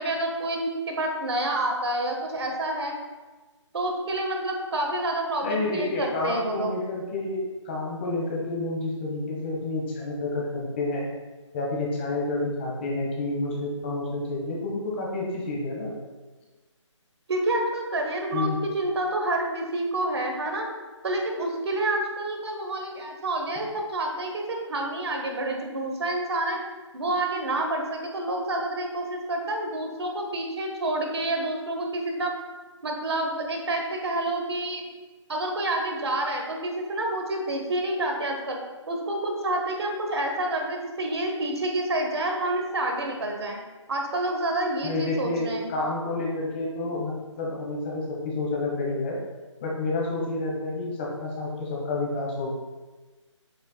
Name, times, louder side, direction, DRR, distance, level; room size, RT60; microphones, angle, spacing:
voice 1, 0.0-2.9 3.7-6.7 17.3-20.7 21.0-26.6 26.9-32.3 32.8-34.8 35.3-38.6 38.9-43.6 43.9-45.7, right 1 dB, 55° right, 2 dB, 1.4 m, -28 dB
voice 2, 5.4-11.1 11.5-16.0 18.3-18.6 44.8-49.2 49.6-52.5, left 2 dB, 20° left, -3 dB, 1.1 m, -29 dB
8.0 x 6.9 x 2.2 m, 1.3 s
figure-of-eight pair, 160°, 16 cm